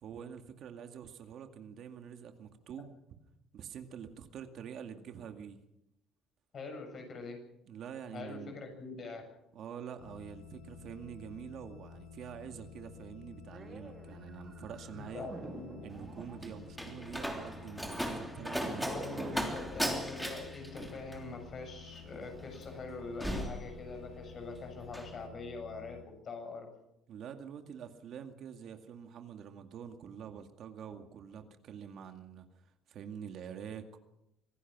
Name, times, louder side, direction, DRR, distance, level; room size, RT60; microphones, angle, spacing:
voice 1, 0.0-2.9 3.5-5.6 7.7-8.6 9.5-15.3 15.8-18.9 19.1-19.4 27.1-32.4 32.9-34.0, right 8 dB, 55° right, 6 dB, 2.1 m, -46 dB
voice 2, 6.5-7.4 8.1-9.2 14.9-15.8 18.8-26.0 26.2-26.7, left 3 dB, 40° left, 4 dB, 7.3 m, -43 dB
sound 1, 10.0-26.0, left 7 dB, 85° left, 3.1 m, -52 dB
sound 2, 13.5-19.4, right 4 dB, 25° right, 2.7 m, -49 dB
Slam, 15.9-24.4 24.7-25.1, equal, ahead, 3.3 m, -38 dB
25.5 x 17.5 x 6.2 m, 0.83 s
cardioid pair, 135°, 0 cm